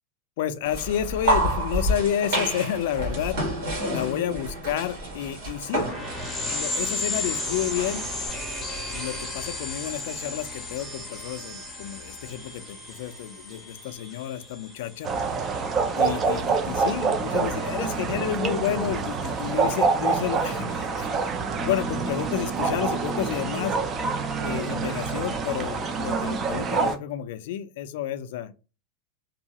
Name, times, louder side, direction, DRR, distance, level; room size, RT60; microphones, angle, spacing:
voice 1, 0.4-3.4 3.9-5.9 6.5-8.1 8.9-15.1 16.0-21.3 21.6-23.8 24.4-28.6, left 10 dB, 65° left, 0.3 m, -30 dB
sound 1, 0.6-8.3, right 1 dB, 60° right, 1.6 m, -29 dB
sound 2, 5.7-15.9, left 2 dB, 5° right, 0.8 m, -34 dB
sound 3, 15.0-27.0, right 4 dB, 20° right, 0.4 m, -26 dB
2.7 x 2.3 x 2.8 m
supercardioid pair, 165°, 0 cm